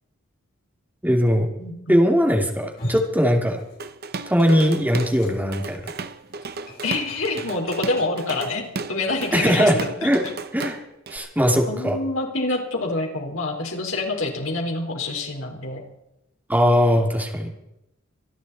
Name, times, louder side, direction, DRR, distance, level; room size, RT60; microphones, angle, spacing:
voice 1, 1.0-1.5 1.9-3.6 4.3-5.8 9.3-10.3 10.5-10.8 11.1-12.0 16.5-17.5, equal, 10° right, 2 dB, 2.8 m, -20 dB
voice 2, 1.6-2.0 6.8-10.1 11.7-15.8, left 2 dB, 75° left, 1 dB, 4.3 m, -27 dB
sound 1, 2.5-4.0 4.2-9.8, left 1 dB, 50° left, 7.7 m, -39 dB
Drum kit / Drum, 3.8-5.2 5.5-11.2, right 3 dB, 50° right, 0.9 m, -34 dB
26.5 x 11.0 x 4.2 m, 0.87 s
head